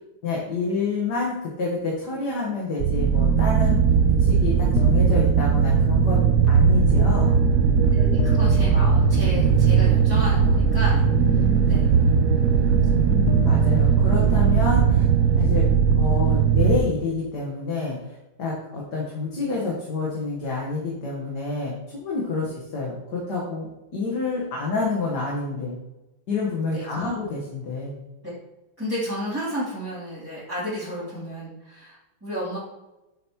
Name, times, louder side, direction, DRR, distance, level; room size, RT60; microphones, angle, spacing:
voice 1, 0.2-3.8 4.2-7.3 11.1-11.8 12.9-15.1 15.4-15.7 16.0-25.8 26.3-28.0, left 3 dB, 55° left, -4 dB, 1.9 m, -28 dB
sound 1, 2.8-16.8, right 6 dB, 85° right, 0.7 m, -19 dB
sound 2, 4.7-5.7 8.2-9.8 11.0-11.1 13.2-15.0, left 6 dB, 75° left, 1.4 m, -33 dB
voice 2, 7.9-11.4 11.7-11.8 12.7-12.9 26.7-27.1 28.8-32.6, equal, 5° right, -13 dB, 2.9 m, -32 dB
8.8 x 7.1 x 3.0 m, 1.0 s
omnidirectional pair, 2.2 m